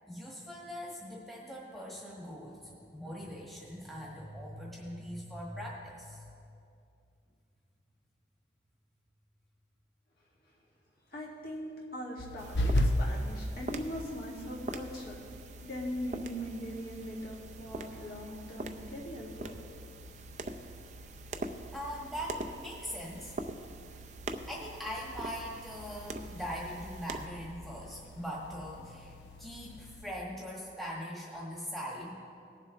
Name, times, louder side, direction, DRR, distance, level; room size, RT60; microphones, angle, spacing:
voice 1, 0.1-6.2 21.7-23.3 24.5-29.1 29.4-32.2, equal, ahead, -4 dB, 1.5 m, -41 dB
voice 2, 11.1-15.2 15.6-19.6, equal, 55° left, -4 dB, 2.1 m, -40 dB
sound 1, 12.2-30.1, left 1 dB, 75° left, 0.7 m, -39 dB
sound 2, 12.4-27.3, right 2 dB, 40° right, 0.5 m, -44 dB
19.0 x 7.3 x 3.2 m, 2.5 s
head